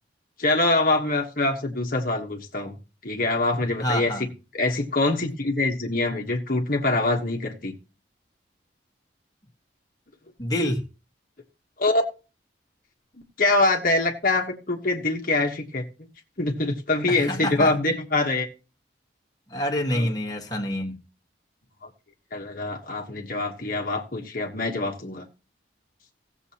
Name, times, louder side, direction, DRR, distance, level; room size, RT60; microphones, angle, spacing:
voice 1, 0.4-2.8 3.0-4.3 4.5-7.7 11.8-12.0 13.4-15.8 16.4-18.5 19.9-20.1 21.8-21.9 22.3-25.3, left 2 dB, 50° left, 1.3 m, -24 dB
voice 2, 3.8-4.3 10.4-10.9 17.1-17.7 19.5-20.9, equal, 20° left, 1.6 m, -27 dB
17.5 x 7.3 x 2.9 m
head